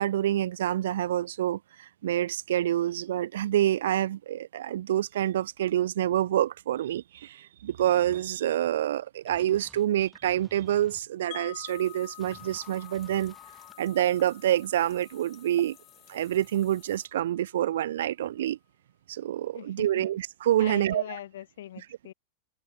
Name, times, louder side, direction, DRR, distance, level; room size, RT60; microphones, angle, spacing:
voice 1, 0.0-13.3 13.8-15.8 16.1-18.6 19.1-21.0, right 12 dB, 80° right, 0.4 m, -27 dB
sound 1, 9.3-11.0 12.2-13.7, left 2 dB, 5° left, 3.1 m, -55 dB
Wind chime, 11.3-17.3, left 30 dB, 50° left, 3.8 m, -49 dB
sound 2, 11.7-17.1, left 13 dB, 30° left, 1.7 m, -56 dB
voice 2, 19.5-20.1 20.6-22.1, left 12 dB, 80° left, 1.6 m, -42 dB
open air
supercardioid pair, 145°, 0 cm